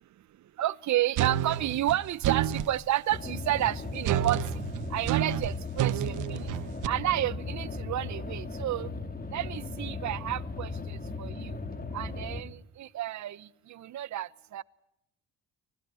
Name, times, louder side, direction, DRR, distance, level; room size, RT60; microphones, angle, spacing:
voice 1, 0.6-4.4 4.9-6.5 6.9-8.9 9.3-11.6 11.9-14.6, right 13 dB, 70° right, 1.0 m, -31 dB
sound 1, 1.2-2.7 4.0-6.9, right 11 dB, 85° right, 1.3 m, -29 dB
sound 2, 3.1-12.4, left 3 dB, 30° left, 4.0 m, -37 dB
25.5 x 20.0 x 9.5 m
cardioid pair, 90°, 30 cm